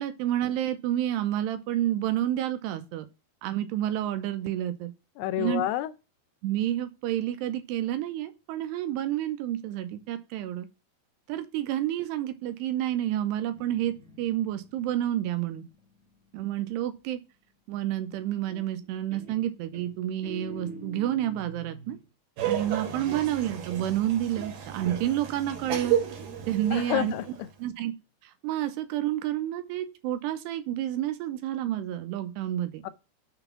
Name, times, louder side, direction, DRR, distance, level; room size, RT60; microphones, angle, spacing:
voice 1, 0.0-3.1 3.4-4.9 5.4-5.6 6.4-10.7 11.3-15.6 16.3-17.2 17.7-22.0 22.4-26.0 26.5-27.1 27.6-27.9 28.2-32.8, right 12 dB, 85° right, 2.7 m, -29 dB
voice 2, 5.2-5.9 26.7-27.5 32.8-32.9, left 14 dB, 85° left, 2.5 m, -29 dB
Guitar, 13.4-16.9 18.5-18.9 19.1-22.0, right 2 dB, 35° right, 1.1 m, -46 dB
Laughter, 22.4-27.4, right 9 dB, 70° right, 2.9 m, -32 dB
6.7 x 4.0 x 5.7 m
omnidirectional pair, 4.8 m